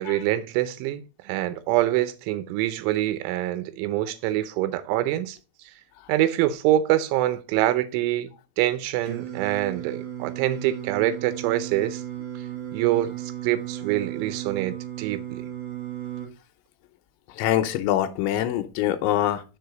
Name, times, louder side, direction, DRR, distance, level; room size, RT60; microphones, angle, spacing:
voice 1, 0.0-5.4 6.1-12.0 12.7-15.5, right 14 dB, 85° right, 3.2 m, -25 dB
Singing, 9.1-16.3, right 12 dB, 60° right, 2.5 m, -35 dB
voice 2, 17.4-19.4, left 12 dB, 80° left, 3.0 m, -24 dB
6.6 x 4.7 x 5.1 m
omnidirectional pair, 5.4 m